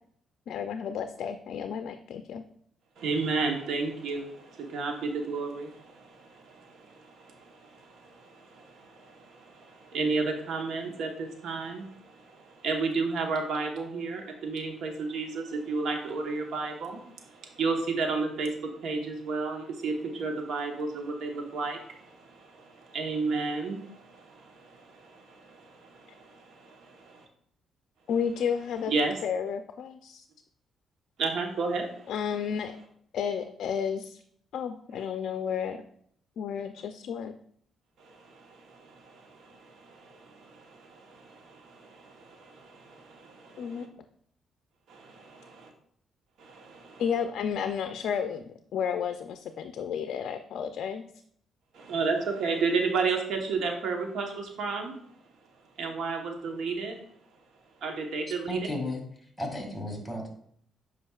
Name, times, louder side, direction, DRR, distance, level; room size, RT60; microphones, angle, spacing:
voice 1, 0.5-2.4 28.1-28.9 29.2-30.2 32.1-32.8 33.1-34.2 34.5-35.9 36.4-37.3 43.6-43.9 47.0-51.1, left 7 dB, 70° left, 8 dB, 0.4 m, -32 dB
voice 2, 3.0-27.3 28.9-29.1 31.2-32.1 38.0-43.9 44.9-45.7 46.4-47.0 51.7-54.9 55.8-56.9 57.8-58.6, right 4 dB, 75° right, 3 dB, 1.1 m, -33 dB
voice 3, 58.5-59.0 59.4-60.3, left 1 dB, ahead, 1 dB, 2.0 m, -33 dB
8.4 x 5.1 x 2.4 m, 0.65 s
cardioid pair, 90°, 0 cm